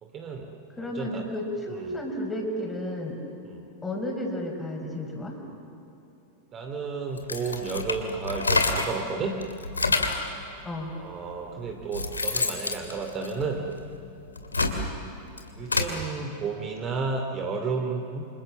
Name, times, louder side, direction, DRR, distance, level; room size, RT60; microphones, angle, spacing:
voice 1, 0.0-1.3 1.7-2.0 3.4-3.6 6.5-9.4 10.9-14.1 15.5-18.2, right 4 dB, 30° right, 3 dB, 2.6 m, -32 dB
voice 2, 0.8-3.2 3.8-5.4 10.6-10.9, left 1 dB, 10° left, 2 dB, 5.5 m, -32 dB
sound 1, 7.2-9.0 9.4-10.3 11.1-11.2 11.7-13.8 14.3-16.0, left 3 dB, 80° left, 2.4 m, -27 dB
28.5 x 27.0 x 7.3 m, 2.9 s
figure-of-eight pair, 90°, 0 cm